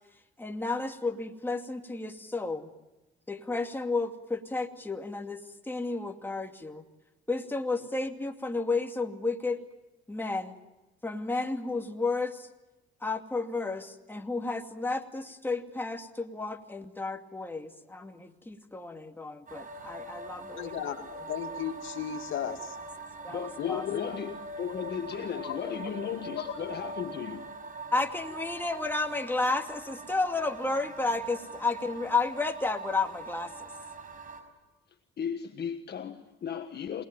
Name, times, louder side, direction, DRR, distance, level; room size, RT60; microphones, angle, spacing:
voice 1, 0.4-2.7 3.3-6.8 7.3-9.6 10.1-10.6 11.0-12.5 13.0-20.7 22.4-22.6 23.2-23.8 27.9-33.7, left 3 dB, 10° left, 2.4 m, -32 dB
sound 1, 19.5-34.4, right 3 dB, 45° right, 5.6 m, -43 dB
voice 2, 20.6-22.8 23.6-24.4 24.7-24.8 25.3-26.0 26.3-26.7, left 10 dB, 80° left, 2.3 m, -36 dB
voice 3, 23.3-24.3 24.6-27.5 35.2-37.0, left 8 dB, 55° left, 1.6 m, -36 dB
27.0 x 20.0 x 9.0 m
cardioid pair, 90°, 20 cm